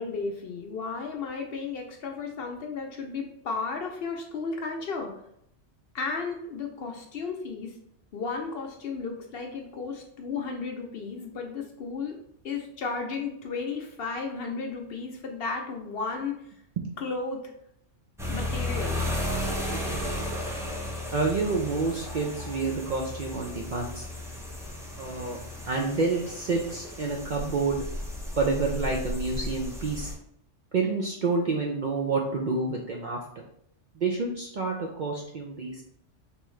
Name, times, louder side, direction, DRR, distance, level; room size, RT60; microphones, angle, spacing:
voice 1, 0.0-5.1 5.9-7.8 8.1-12.1 12.4-16.4 17.0-17.5 18.3-19.0, left 4 dB, 60° left, 2 dB, 0.7 m, -34 dB
sound 1, 18.2-30.2, left 1 dB, 5° right, 0.3 m, -34 dB
voice 2, 19.7-20.2 21.1-24.1 25.0-25.4 25.7-27.8 28.4-30.1 30.7-33.2 34.0-35.8, right 4 dB, 60° right, -1 dB, 0.5 m, -28 dB
3.5 x 3.1 x 3.1 m, 0.72 s
omnidirectional pair, 1.3 m